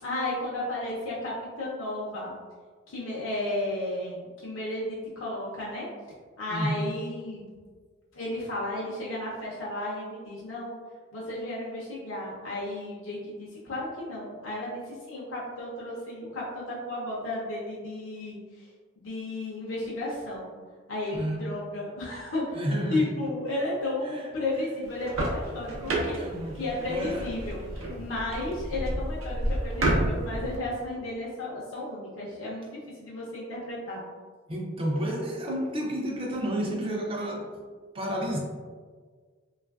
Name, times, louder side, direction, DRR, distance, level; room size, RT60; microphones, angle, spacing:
voice 1, 0.0-2.3 2.9-5.9 6.4-7.5 8.1-10.8 11.1-18.7 19.0-20.5 20.9-22.6 22.9-26.2 26.6-34.0, left 1 dB, 75° left, -5 dB, 0.6 m, -33 dB
voice 2, 6.5-6.9 21.1-21.6 22.5-23.1 24.0-24.3 26.2-27.3 34.5-37.6 37.9-38.4, equal, 25° right, -1 dB, 0.4 m, -31 dB
sound 1, 24.8-30.6, right 1 dB, 90° right, 0.6 m, -30 dB
3.2 x 2.3 x 2.3 m, 1.5 s
head